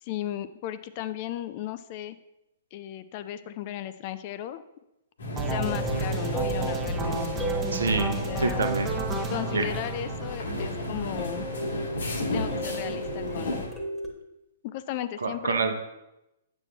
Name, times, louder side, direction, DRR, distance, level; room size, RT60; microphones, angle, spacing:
voice 1, 0.0-2.2 2.7-4.6 5.5-7.2 8.0-8.6 9.3-11.5 12.2-13.7 14.6-15.6, left 12 dB, 40° left, 13 dB, 0.3 m, -35 dB
sound 1, 5.2-13.7, equal, 70° left, 1.3 m, -33 dB
sound 2, 5.4-11.3, right 2 dB, 15° right, 0.7 m, -33 dB
sound 3, 5.7-9.9 10.5-14.1, right 1 dB, 10° left, 1.2 m, -36 dB
voice 2, 7.7-8.9 9.5-9.6 15.2-15.7, right 4 dB, 70° right, 5 dB, 0.8 m, -27 dB
8.6 x 6.2 x 2.3 m, 0.93 s
figure-of-eight pair, 115°, 0 cm